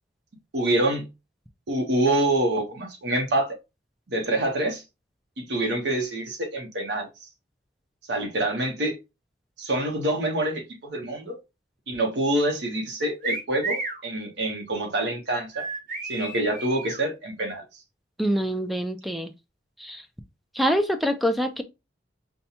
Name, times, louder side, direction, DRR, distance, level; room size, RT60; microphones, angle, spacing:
voice 1, 0.5-1.1 1.7-3.6 4.1-4.8 5.4-7.1 8.1-9.0 9.6-11.4 11.9-15.6 16.0-17.6, right 1 dB, 85° right, 0.9 m, -26 dB
sound 1, 13.2-14.0 15.5-17.0, right 3 dB, 50° right, 0.8 m, -32 dB
voice 2, 18.2-19.3 19.8-20.0 20.5-21.6, equal, ahead, 0.4 m, -25 dB
5.3 x 2.2 x 2.8 m
head